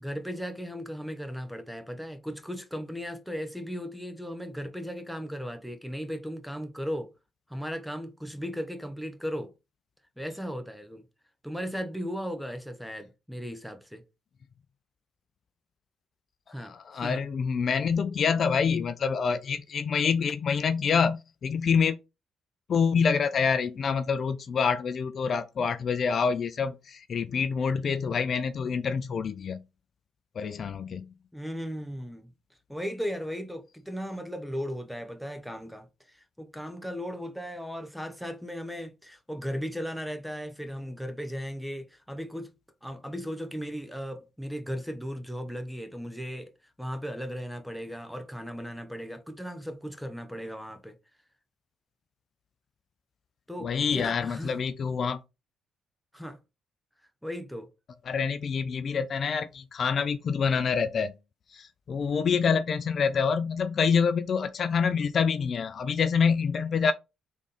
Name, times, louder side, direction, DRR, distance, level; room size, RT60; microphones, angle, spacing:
voice 1, 0.0-7.1 7.5-9.5 10.2-11.1 11.4-14.0 16.5-17.2 31.3-32.3 32.7-42.5 42.8-46.5 46.8-51.0 53.5-54.6 56.1-56.4 57.2-57.7, equal, ahead, 0.9 m, -36 dB
voice 2, 16.6-22.0 22.7-29.6 30.4-31.1 53.6-55.2 58.1-61.1 61.5-66.9, left 6 dB, 55° left, 0.4 m, -26 dB
3.6 x 3.5 x 4.1 m
cardioid pair, 90°, 0 cm